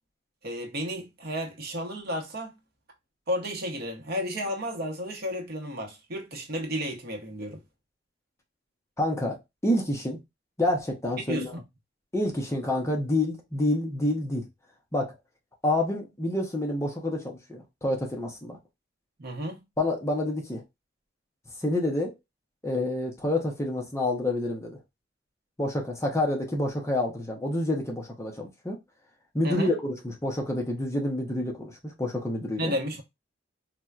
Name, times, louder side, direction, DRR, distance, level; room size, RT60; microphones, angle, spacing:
voice 1, 0.4-2.5 3.3-7.6 11.3-11.6 19.2-19.6 29.4-29.7 32.6-33.0, equal, 55° right, 0.8 m, -32 dB
voice 2, 9.0-10.2 10.6-11.5 12.1-14.4 14.9-15.1 15.6-18.6 19.8-20.6 21.6-22.1 22.6-24.8 25.6-28.8 29.3-32.7, left 1 dB, 15° left, 0.7 m, -28 dB
4.2 x 2.1 x 2.3 m
head